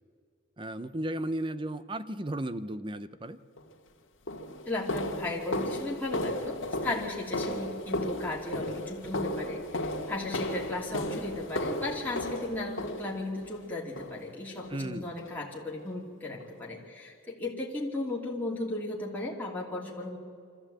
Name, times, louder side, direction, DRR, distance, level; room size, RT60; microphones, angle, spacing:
voice 1, 0.6-3.4 14.7-15.1, right 1 dB, 25° right, 13 dB, 0.7 m, -34 dB
sound 1, 3.6-3.7 4.3-13.5 14.0-14.3 14.6-14.8 15.2-15.4 15.8-15.9 16.4-16.5, left 1 dB, 65° left, 2.2 m, -35 dB
voice 2, 4.7-20.2, left 2 dB, 10° left, -4 dB, 2.8 m, -36 dB
24.5 x 14.5 x 8.8 m, 2.3 s
head